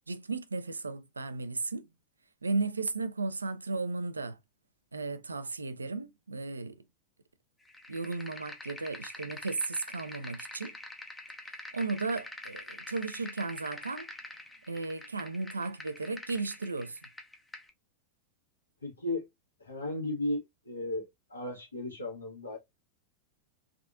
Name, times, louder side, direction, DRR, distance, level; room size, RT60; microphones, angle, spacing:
voice 1, 0.1-1.9 2.4-4.4 4.9-6.8 7.9-10.7 11.7-14.1 14.7-17.0, right 3 dB, 75° right, 0.3 m, -35 dB
sound 1, 7.7-17.7, left 2 dB, 10° left, 0.6 m, -46 dB
voice 2, 18.8-19.3 19.6-20.4 20.6-21.0 21.3-22.6, left 1 dB, 75° left, 1.4 m, -34 dB
3.4 x 2.5 x 2.4 m
figure-of-eight pair, 90°, 0 cm